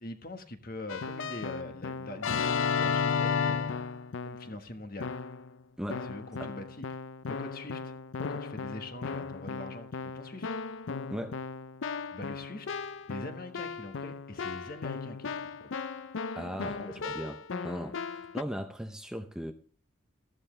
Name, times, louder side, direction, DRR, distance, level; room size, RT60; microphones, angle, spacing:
voice 1, 0.0-3.8 4.2-5.1 5.9-6.9 7.3-10.5 12.1-12.7 13.1-15.3 15.6-15.7 16.6-16.9, left 2 dB, 45° left, 1.4 m, -43 dB
Keyboard (musical), 0.9-4.5 5.0-5.5 5.9-18.4, left 5 dB, 75° left, 0.5 m, -35 dB
voice 2, 11.1-11.4 16.4-19.5, equal, 5° right, 0.6 m, -38 dB
14.0 x 12.5 x 3.3 m
head